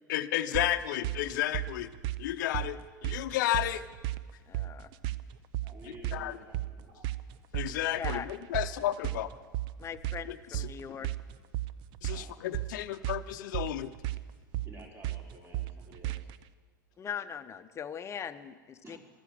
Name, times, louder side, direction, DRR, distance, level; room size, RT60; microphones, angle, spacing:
voice 1, 0.1-1.9 2.2-3.8 6.1-6.3 7.5-9.3 12.0-13.9, left 13 dB, 65° left, 10 dB, 0.7 m, -32 dB
sound 1, 0.5-16.4, right 15 dB, 50° right, 0.6 m, -36 dB
voice 2, 4.5-4.9 7.9-8.3 9.8-11.1 17.0-19.0, left 8 dB, 25° left, 11 dB, 0.8 m, -40 dB
voice 3, 5.6-7.1 8.5-8.6 12.1-12.4 14.6-16.3 18.8-19.0, right 1 dB, 20° right, 0 dB, 4.1 m, -52 dB
14.0 x 13.0 x 7.5 m, 1.5 s
hypercardioid pair, 90°, 11 cm